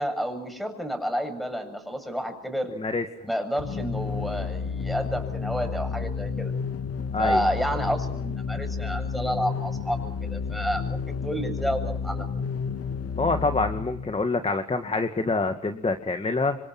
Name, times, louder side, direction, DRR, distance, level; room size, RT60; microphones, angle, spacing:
voice 1, 0.0-2.8 3.3-6.5 7.2-12.3, equal, ahead, 7 dB, 7.5 m, -30 dB
voice 2, 2.8-3.3 7.1-7.4 13.2-16.6, left 3 dB, 20° left, 7 dB, 2.0 m, -26 dB
sound 1, 3.6-14.3, left 5 dB, 50° left, 2.3 m, -31 dB
28.0 x 25.0 x 6.1 m, 0.69 s
cardioid pair, 90°, 30 cm